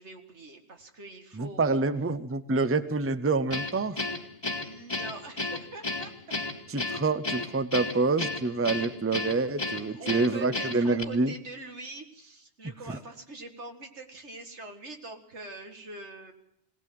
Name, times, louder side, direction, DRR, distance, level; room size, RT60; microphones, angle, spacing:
voice 1, 0.0-1.8 4.6-6.1 9.9-16.3, right 3 dB, 85° right, 5 dB, 2.3 m, -44 dB
voice 2, 1.3-4.0 6.7-11.3, right 3 dB, 15° right, 13 dB, 0.7 m, -27 dB
Guitar, 3.5-11.0, left 2 dB, 25° left, 1.7 m, -33 dB
21.0 x 18.5 x 7.7 m, 0.76 s
omnidirectional pair, 1.1 m